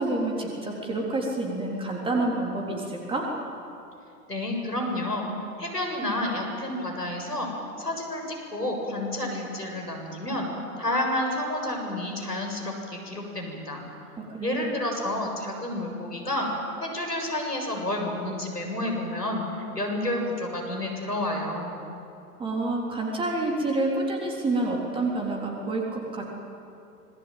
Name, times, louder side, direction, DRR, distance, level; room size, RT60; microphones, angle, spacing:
voice 1, 0.0-3.3 14.2-14.7 22.4-26.2, right 2 dB, 10° right, -1 dB, 3.7 m, -28 dB
voice 2, 4.3-5.3 5.6-7.5 7.8-10.5 10.8-13.8 14.4-16.5 16.8-19.4 19.7-21.7, left 1 dB, 85° left, 1 dB, 7.4 m, -30 dB
26.0 x 21.5 x 9.1 m, 2.7 s
figure-of-eight pair, 115°, 47 cm